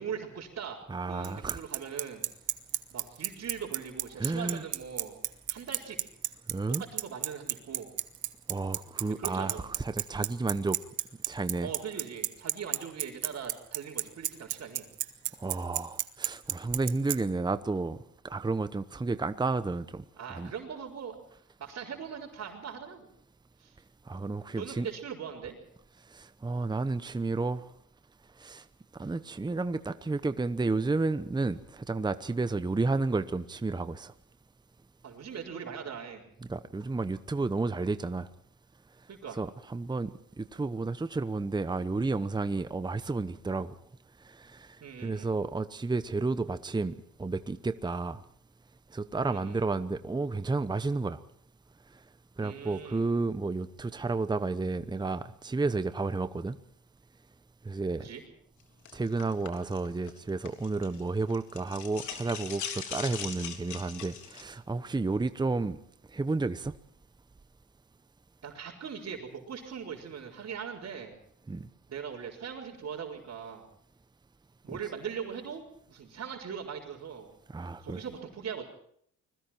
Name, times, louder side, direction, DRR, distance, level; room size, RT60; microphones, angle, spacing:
voice 1, 0.0-0.8 1.0-2.2 2.9-5.2 5.5-6.0 6.8-7.9 9.2-9.6 11.6-14.9 20.2-21.2 21.6-23.1 23.6-23.8 24.5-25.6 35.0-36.3 39.1-39.4 44.8-45.3 49.2-49.6 52.4-53.0 58.0-58.2 68.4-71.2 71.9-73.7 74.6-77.3 77.8-78.6, right 7 dB, 55° right, 4.7 m, -40 dB
voice 2, 0.9-1.6 4.2-4.6 6.5-6.8 8.5-10.8 11.3-11.7 15.4-18.0 18.2-20.0 20.4-20.5 24.1-24.9 26.1-27.6 28.4-28.6 28.9-34.1 36.5-38.3 39.3-43.7 44.2-48.2 48.9-51.2 52.4-56.6 57.6-58.1 58.9-65.8 66.1-66.7 71.5-71.7 77.5-78.0, right 3 dB, 15° right, 0.9 m, -31 dB
Bicycle, 1.2-17.2, right 13 dB, 75° right, 1.4 m, -30 dB
sound 1, 58.9-61.0 61.3-64.4, left 7 dB, 75° left, 3.4 m, -40 dB
30.0 x 21.0 x 4.5 m
cardioid pair, 90°, 30 cm